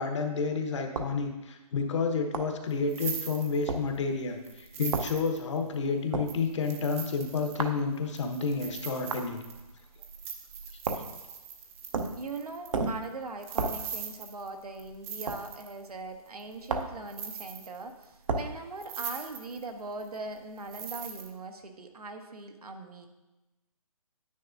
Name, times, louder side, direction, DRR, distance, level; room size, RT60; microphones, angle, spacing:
voice 1, 0.0-9.4, left 4 dB, 50° left, 4 dB, 1.1 m, -30 dB
sound 1, 0.9-1.2 2.3-2.6 3.7-3.9 4.9-5.1 6.1-6.3 7.6-7.8 9.1-9.3 10.8-11.1 11.9-12.2 12.7-13.0 13.6-13.8 15.3-15.4 16.7-17.0 18.3-18.5, right 4 dB, 60° right, 0.9 m, -31 dB
sound 2, 2.7-4.0 4.4-5.7 6.3-15.9 16.4-16.8 17.1-18.0 18.4-18.5 18.8-19.7 20.0-21.3, right 7 dB, 20° right, 0.6 m, -41 dB
voice 2, 12.1-23.1, right 3 dB, 75° right, 5 dB, 1.2 m, -41 dB
9.6 x 8.7 x 2.6 m, 1.0 s
hypercardioid pair, 155°, 19 cm